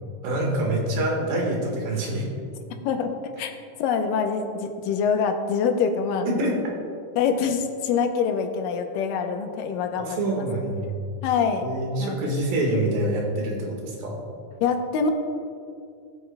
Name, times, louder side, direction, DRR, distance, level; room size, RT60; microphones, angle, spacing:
voice 1, 0.2-2.3 6.3-6.6 9.9-10.9 11.6-14.2, right 1 dB, 85° right, -1 dB, 3.4 m, -26 dB
voice 2, 2.8-6.3 7.2-10.5 11.2-11.7 12.0-12.2 14.6-15.1, left 6 dB, 85° left, 5 dB, 2.3 m, -25 dB
18.5 x 7.8 x 2.2 m, 2.4 s
omnidirectional pair, 4.0 m